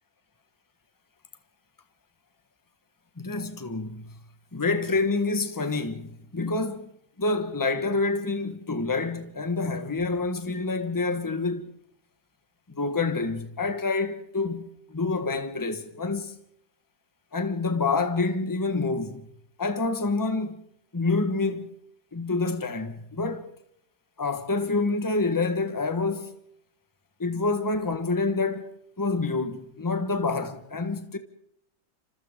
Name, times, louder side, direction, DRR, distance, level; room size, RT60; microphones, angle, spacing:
voice 1, 3.2-4.0 4.5-6.9 7.2-11.7 12.7-16.3 17.3-19.2 19.6-20.6 20.9-21.7 22.1-23.5 24.2-26.3 27.2-31.2, left 3 dB, 15° left, 1.2 m, -27 dB
28.0 x 26.0 x 3.8 m
omnidirectional pair, 1.9 m